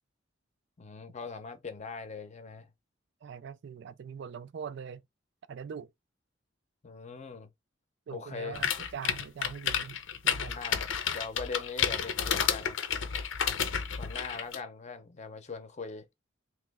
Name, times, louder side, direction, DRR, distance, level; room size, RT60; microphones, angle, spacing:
voice 1, 0.8-2.7 6.8-7.5 8.1-8.6 10.5-12.8 14.0-16.1, left 4 dB, 40° left, 0.7 m, -41 dB
voice 2, 3.2-5.0 5.5-5.9 8.1-10.6, right 7 dB, 65° right, 0.3 m, -42 dB
sound 1, 8.5-14.6, left 8 dB, 85° left, 0.6 m, -31 dB
3.0 x 3.0 x 3.5 m
head